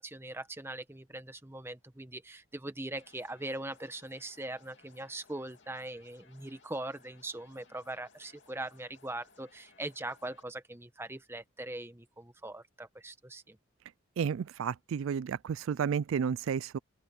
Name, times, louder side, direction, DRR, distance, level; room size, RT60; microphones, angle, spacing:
voice 1, 0.0-13.6, right 2 dB, 10° right, 1.1 m, -41 dB
sound 1, 3.0-10.4, left 4 dB, 55° left, 2.9 m, -63 dB
voice 2, 14.2-16.8, right 7 dB, 75° right, 0.3 m, -32 dB
open air
head